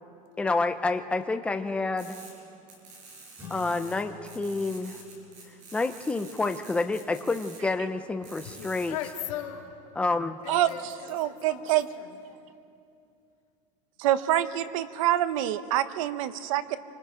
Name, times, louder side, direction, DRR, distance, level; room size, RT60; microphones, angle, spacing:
voice 1, 0.4-2.2 3.5-5.0 5.7-9.0 10.0-10.4, left 3 dB, 5° left, 8 dB, 0.6 m, -28 dB
sound 1, 2.0-2.3 2.7-4.0 4.2-7.6 8.2-9.1 10.7-10.8 11.1-11.2, right 4 dB, 45° right, 6.2 m, -48 dB
sound 2, 3.4-8.2, left 5 dB, 10° right, 3.2 m, -50 dB
voice 2, 8.4-9.8 10.4-11.7 12.0-12.2, left 11 dB, 80° left, 3 dB, 2.2 m, -38 dB
voice 3, 11.1-11.9 14.0-16.8, right 13 dB, 80° right, 12 dB, 1.0 m, -26 dB
25.5 x 25.5 x 5.1 m, 2.5 s
cardioid pair, 165°, 17 cm